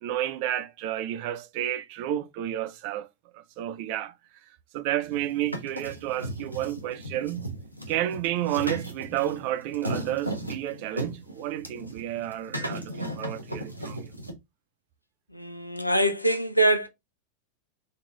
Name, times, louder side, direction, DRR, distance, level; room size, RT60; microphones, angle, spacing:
voice 1, 0.0-3.1 3.3-4.1 4.7-7.5 7.9-14.0, right 13 dB, 45° right, 0.6 m, -31 dB
sound 1, 5.1-14.3, right 1 dB, 90° right, 0.9 m, -36 dB
voice 2, 15.3-16.9, right 1 dB, 85° left, 0.7 m, -24 dB
4.3 x 3.7 x 3.1 m
figure-of-eight pair, 90°, 0 cm